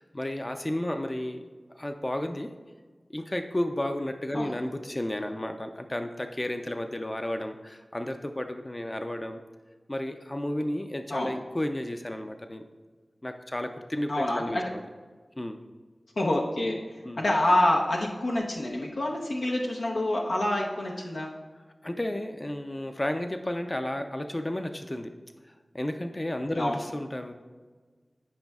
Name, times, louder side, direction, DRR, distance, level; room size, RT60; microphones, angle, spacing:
voice 1, 0.0-1.4 1.7-2.5 3.1-9.4 9.9-12.6 13.2-14.8 15.4-15.6 17.0-17.2 21.8-25.1 25.5-27.3, left 1 dB, 30° left, 6 dB, 0.5 m, -32 dB
voice 2, 14.1-14.7 16.2-16.8 17.2-21.3 26.5-26.8, left 1 dB, 85° left, -2 dB, 0.8 m, -27 dB
13.0 x 5.4 x 2.3 m, 1.4 s
wide cardioid pair, 45°, 0 cm